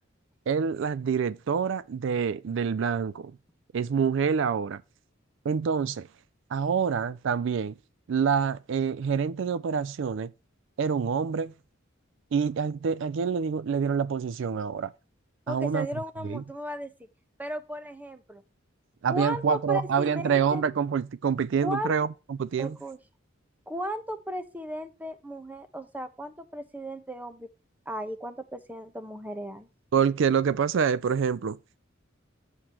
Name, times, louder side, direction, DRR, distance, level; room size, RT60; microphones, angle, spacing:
voice 1, 0.5-3.3 3.7-4.8 5.4-6.1 6.5-7.7 8.1-10.3 10.8-11.5 12.3-14.9 15.5-15.9 16.2-16.4 19.0-22.8 29.9-31.6, right 6 dB, 65° right, 0.4 m, -26 dB
voice 2, 15.5-16.9 17.4-18.4 19.1-20.6 21.6-21.9 22.6-23.0 23.7-27.5 27.9-29.7, equal, 10° right, 0.9 m, -35 dB
8.7 x 7.2 x 3.0 m
head